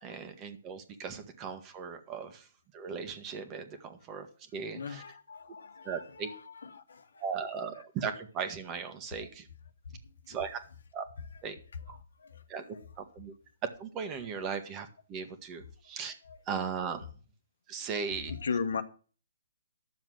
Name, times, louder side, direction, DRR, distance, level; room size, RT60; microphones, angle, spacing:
voice 1, 0.0-2.4 2.7-4.3 4.5-5.0 5.8-6.3 7.2-9.4 10.3-10.6 10.9-11.0 11.4-11.5 11.9-12.0 12.5-12.6 13.0-13.3 13.8-16.1 16.5-17.1 17.7-18.3, right 6 dB, 20° right, 1.4 m, -37 dB
voice 2, 4.7-5.6 18.4-18.8, left 5 dB, 75° left, 1.3 m, -33 dB
11.0 x 7.0 x 6.3 m
hypercardioid pair, 155°, 0 cm